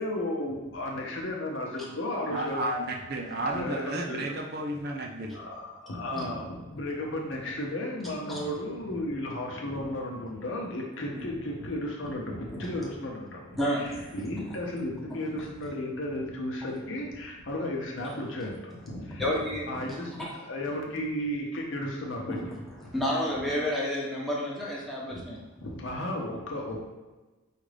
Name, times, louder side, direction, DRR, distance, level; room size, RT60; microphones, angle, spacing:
voice 1, 0.0-2.7 3.5-4.4 5.3-19.3 19.7-22.4 22.8-22.9 25.1-25.2 25.6-26.8, left 1 dB, 70° left, 0 dB, 0.8 m, -34 dB
voice 2, 2.3-5.4, right 1 dB, 50° right, 1 dB, 0.6 m, -32 dB
voice 3, 13.6-14.1 15.1-15.2 19.2-20.3 22.4-22.5 22.9-25.5, equal, ahead, -5 dB, 0.8 m, -30 dB
5.1 x 2.5 x 3.3 m, 1.2 s
head